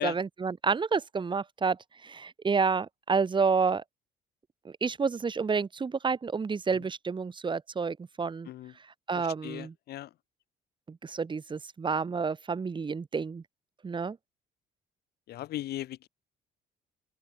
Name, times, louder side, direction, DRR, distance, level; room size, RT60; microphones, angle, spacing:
voice 1, 0.0-3.8 4.6-8.5 9.1-9.7 10.9-13.4 13.8-14.2, right 5 dB, 30° right, 5.6 m, -29 dB
voice 2, 9.1-10.1 15.3-16.1, left 14 dB, 70° left, 5.0 m, -37 dB
open air
cardioid pair, 110°, 17 cm